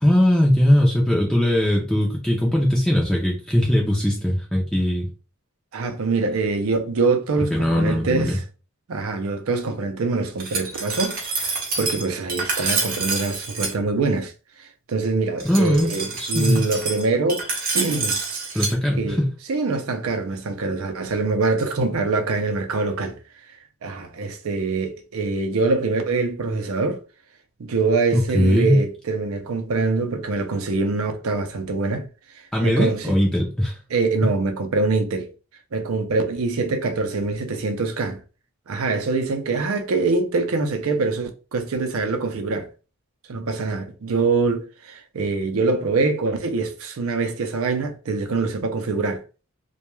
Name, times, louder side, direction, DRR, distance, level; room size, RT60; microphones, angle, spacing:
voice 1, 0.0-5.1 7.5-8.4 15.4-15.9 16.2-16.6 18.5-19.3 28.1-28.8 32.5-33.8, left 1 dB, 5° left, 0.4 m, -20 dB
voice 2, 5.7-8.4 8.9-14.3 14.9-17.5 17.7-18.4 19.0-19.2 19.5-23.2 23.8-27.0 27.6-32.1 32.6-33.2 33.9-35.3 35.7-38.2 38.7-42.7 43.3-49.2, right 3 dB, 80° right, 0.5 m, -24 dB
Glass, 10.4-13.7 15.4-18.7, right 3 dB, 45° right, 0.6 m, -27 dB
2.2 x 2.2 x 3.0 m
head